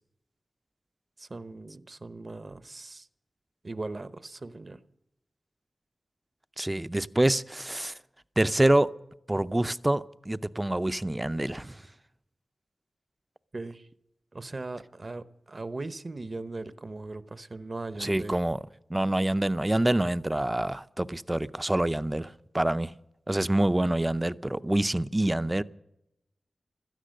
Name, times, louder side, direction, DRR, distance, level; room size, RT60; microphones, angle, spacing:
voice 1, 1.2-3.1 3.6-4.8 13.5-13.9 14.3-18.3, right 3 dB, 45° right, 0.8 m, -39 dB
voice 2, 6.6-8.0 8.4-8.9 9.3-11.8 18.0-18.6 18.9-22.9 23.3-25.6, right 1 dB, 20° right, 0.5 m, -26 dB
17.0 x 13.0 x 6.5 m
wide cardioid pair, 70°, 0 cm